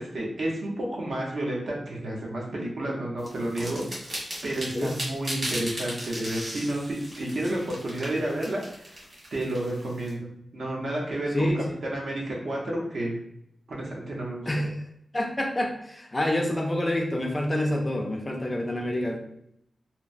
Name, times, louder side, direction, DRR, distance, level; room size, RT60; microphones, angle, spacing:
voice 1, 0.0-9.0 9.3-11.6 11.9-13.2 13.7-14.5, right 1 dB, 65° right, -3 dB, 0.8 m, -31 dB
sound 1, 3.2-10.1, equal, 35° right, 1.2 m, -37 dB
voice 2, 14.5-14.8 15.1-19.2, left 1 dB, 20° left, 2 dB, 0.4 m, -27 dB
3.0 x 2.0 x 2.5 m, 0.75 s
wide cardioid pair, 115°, 0 cm